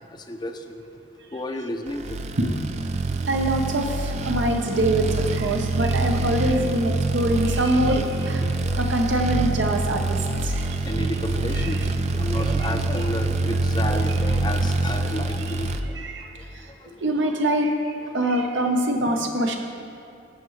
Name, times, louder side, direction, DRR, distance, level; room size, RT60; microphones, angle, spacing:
voice 1, 0.3-0.9 1.3-2.2 7.5-8.0 8.4-8.8 10.8-11.8 12.1-15.7 16.8-16.9, left 1 dB, 25° left, 6 dB, 0.5 m, -32 dB
sound 1, 2.0-15.8, right 3 dB, 35° right, 0.4 m, -25 dB
voice 2, 3.3-8.4 8.8-10.2 10.4-10.8 11.6-11.7 16.0-16.3 17.0-17.8 18.1-19.6, right 1 dB, 80° right, 3 dB, 0.9 m, -24 dB
17.0 x 5.7 x 3.2 m, 2.6 s
head